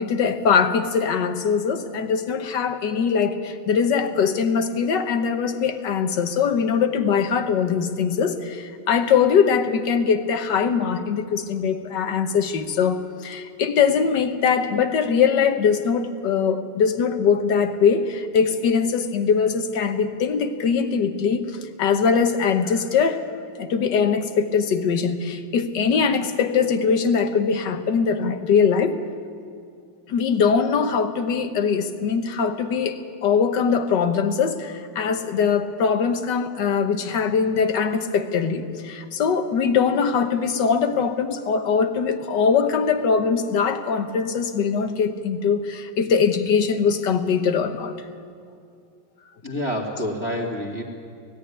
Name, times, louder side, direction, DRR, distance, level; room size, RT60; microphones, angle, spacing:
voice 1, 0.0-23.2 23.6-29.0 30.1-47.9, left 6 dB, 70° left, 8 dB, 1.7 m, -22 dB
voice 2, 49.4-50.8, equal, 15° left, -2 dB, 2.5 m, -27 dB
17.5 x 16.5 x 10.0 m, 2.3 s
omnidirectional pair, 2.0 m